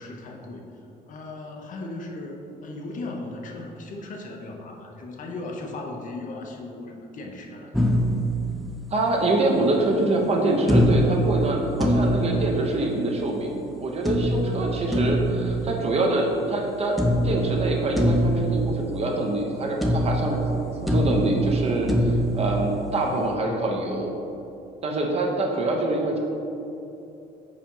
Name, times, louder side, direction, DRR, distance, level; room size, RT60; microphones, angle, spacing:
voice 1, 0.0-8.1, left 2 dB, 50° left, 1 dB, 0.8 m, -37 dB
sound 1, 7.7-9.3 10.7-13.3 14.1-16.6 17.0-19.5 19.8-23.3, right 1 dB, ahead, 0.6 m, -24 dB
voice 2, 8.9-13.5 13.8-17.0 17.2-24.1 24.8-26.2, right 2 dB, 35° right, 0 dB, 0.9 m, -25 dB
4.9 x 4.3 x 5.4 m, 2.9 s
cardioid pair, 110°, 17 cm